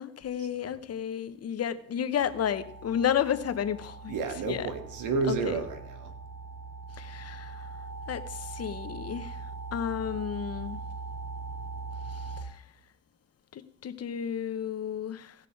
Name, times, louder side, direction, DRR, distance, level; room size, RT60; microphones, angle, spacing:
voice 1, 0.0-4.2 4.5-4.7 5.3-5.6 7.0-7.6 8.1-9.4 9.7-10.8 13.5-15.3, left 9 dB, 55° left, 0.9 m, -32 dB
sound 1, 2.2-12.4, right 4 dB, 60° right, 4.0 m, -41 dB
voice 2, 4.1-6.1, right 4 dB, 90° right, 1.8 m, -31 dB
17.0 x 6.8 x 4.6 m
cardioid pair, 90°, 30 cm